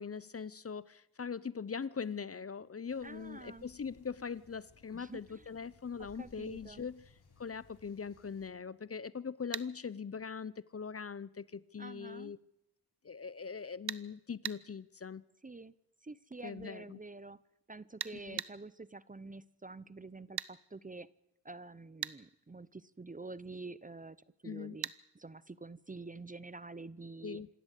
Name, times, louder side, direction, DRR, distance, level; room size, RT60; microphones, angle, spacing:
voice 1, 0.0-7.0 7.4-12.4 13.0-15.2 16.4-17.0 18.3-18.4 24.4-24.8 27.2-27.5, left 6 dB, 40° left, 0.7 m, -41 dB
sound 1, 2.9-8.5, left 4 dB, 90° left, 3.5 m, -63 dB
voice 2, 3.0-3.6 4.9-5.5 6.0-6.9 11.8-12.3 15.4-15.7 16.0-17.4 17.7-21.1 21.4-24.2 24.4-27.4, right 3 dB, 20° right, 0.7 m, -48 dB
sound 2, 9.5-9.7 13.9-14.1 14.4-14.6 18.0-18.5 20.4-20.5 22.0-22.2 24.8-25.0, right 10 dB, 85° right, 0.8 m, -38 dB
27.0 x 12.0 x 8.2 m
cardioid pair, 75°, 38 cm